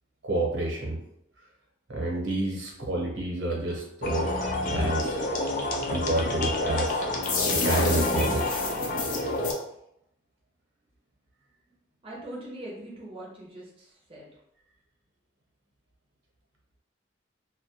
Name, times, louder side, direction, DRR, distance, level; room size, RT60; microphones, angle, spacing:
voice 1, 0.2-1.0 1.9-4.3 4.6-5.2 5.9-7.1 7.5-8.6, right 2 dB, 85° right, -2 dB, 0.8 m, -29 dB
sound 1, 4.0-9.5, left 2 dB, 45° left, 0.4 m, -28 dB
voice 2, 12.0-14.3, right 1 dB, 30° right, -4 dB, 0.4 m, -41 dB
2.2 x 2.1 x 2.8 m, 0.75 s
head